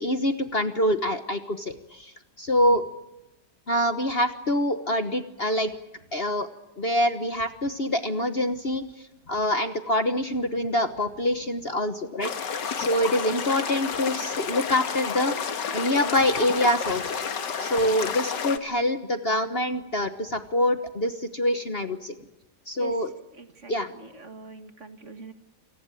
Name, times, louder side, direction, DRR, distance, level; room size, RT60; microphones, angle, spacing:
voice 1, 0.0-2.9 3.7-5.7 6.1-6.5 6.8-15.4 15.7-17.2 17.6-22.2 22.7-23.1 23.7-23.9, left 1 dB, 35° left, 9 dB, 1.4 m, -25 dB
sound 1, 12.2-18.6, left 6 dB, 75° left, 2.2 m, -30 dB
voice 2, 23.3-25.3, right 2 dB, 45° right, 9 dB, 2.0 m, -44 dB
28.0 x 19.0 x 9.1 m, 0.95 s
omnidirectional pair, 1.9 m